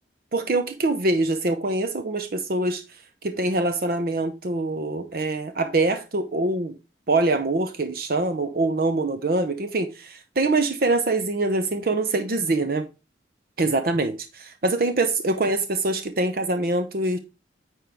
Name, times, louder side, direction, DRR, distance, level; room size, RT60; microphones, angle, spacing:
voice 1, 0.3-2.8 3.2-6.8 7.1-12.8 13.6-17.2, right 2 dB, 50° right, 0.6 m, -24 dB
9.0 x 4.5 x 3.5 m
head